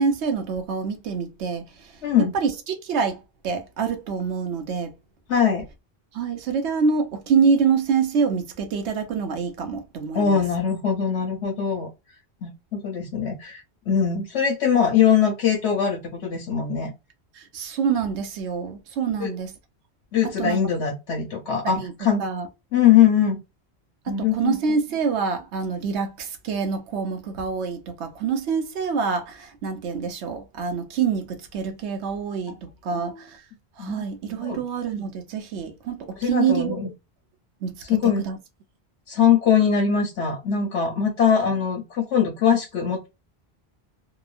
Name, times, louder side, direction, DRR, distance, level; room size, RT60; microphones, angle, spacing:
voice 1, 0.0-1.9 2.2-4.9 6.1-10.4 17.4-19.5 20.2-20.6 21.6-21.9 22.2-22.5 24.1-33.4 33.8-36.8 37.6-38.4, right 6 dB, 85° right, 0.9 m, -26 dB
voice 2, 2.0-2.3 5.3-5.7 10.1-11.9 12.4-16.9 19.2-19.3 20.1-22.2 22.7-23.4 24.1-24.5 32.9-33.2 33.8-34.0 34.4-34.6 36.2-36.9 37.9-38.2 39.1-43.1, left 8 dB, 85° left, 1.0 m, -22 dB
2.9 x 2.2 x 2.4 m
omnidirectional pair, 1.1 m